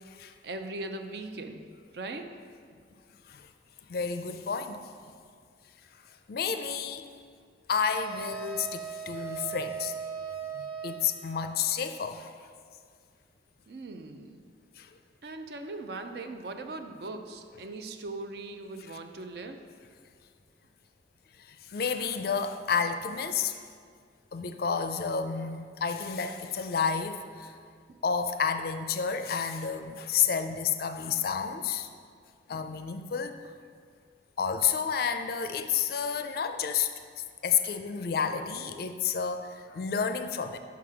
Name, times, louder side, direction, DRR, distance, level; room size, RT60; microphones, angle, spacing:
voice 1, 0.4-1.6 1.9-2.3 13.7-14.4 15.2-19.6, right 2 dB, 60° right, 6 dB, 0.5 m, -39 dB
voice 2, 3.9-4.8 6.3-7.0 7.7-9.9 10.5-12.3 14.8-14.9 21.5-23.6 24.3-27.6 28.0-31.9 32.5-33.4 34.4-36.9 37.4-40.6, left 6 dB, 55° left, 8 dB, 0.4 m, -30 dB
sound 1, 7.9-11.6, right 7 dB, 30° right, 0.9 m, -38 dB
6.0 x 5.7 x 4.8 m, 2.1 s
head